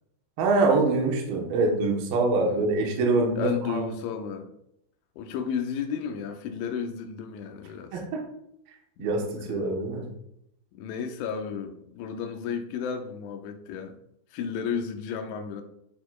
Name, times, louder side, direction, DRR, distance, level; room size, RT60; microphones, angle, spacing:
voice 1, 0.4-3.9 7.9-8.2 9.0-10.1, right 3 dB, 65° right, 2.5 m, -24 dB
voice 2, 2.3-2.7 3.4-4.5 5.2-8.0 9.0-9.7 10.7-14.0 14.3-15.6, left 7 dB, 80° left, 3.0 m, -33 dB
12.0 x 4.1 x 2.4 m
omnidirectional pair, 5.5 m